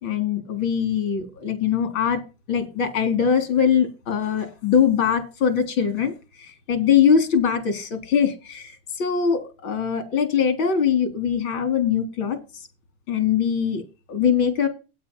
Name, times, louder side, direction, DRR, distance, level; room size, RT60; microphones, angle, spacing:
voice 1, 0.0-2.2 2.5-6.1 6.4-12.4 13.1-13.8 14.1-14.7, left 7 dB, 80° left, 8 dB, 3.9 m, -22 dB
9.3 x 8.7 x 5.6 m, 0.31 s
supercardioid pair, 155°, 43 cm